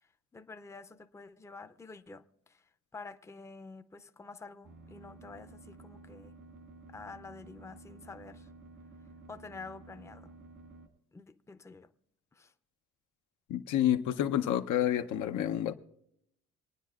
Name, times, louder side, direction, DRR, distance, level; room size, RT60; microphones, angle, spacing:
voice 1, 0.0-6.4 6.9-8.5 9.3-10.3 11.1-11.9 12.3-12.5, left 4 dB, 10° left, 0.5 m, -49 dB
sound 1, 4.6-10.9, right 3 dB, 75° right, 1.9 m, -53 dB
voice 2, 13.5-15.7, left 11 dB, 80° left, 0.7 m, -29 dB
27.0 x 9.4 x 2.3 m
cardioid pair, 90°, 30 cm